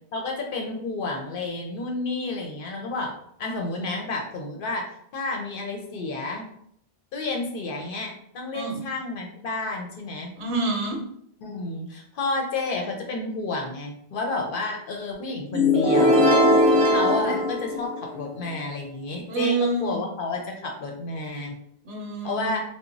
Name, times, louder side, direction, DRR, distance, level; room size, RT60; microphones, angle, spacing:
voice 1, 0.1-3.1 3.4-6.5 7.1-10.3 11.4-16.3 16.9-21.6 22.2-22.6, left 3 dB, 65° left, 1 dB, 0.7 m, -31 dB
voice 2, 10.4-11.0 17.0-17.3 19.3-20.0 21.8-22.6, right 3 dB, 75° right, 1 dB, 0.9 m, -27 dB
sound 1, 15.5-18.4, left 1 dB, 30° right, 0.7 m, -19 dB
2.9 x 2.1 x 2.5 m, 0.68 s
omnidirectional pair, 1.1 m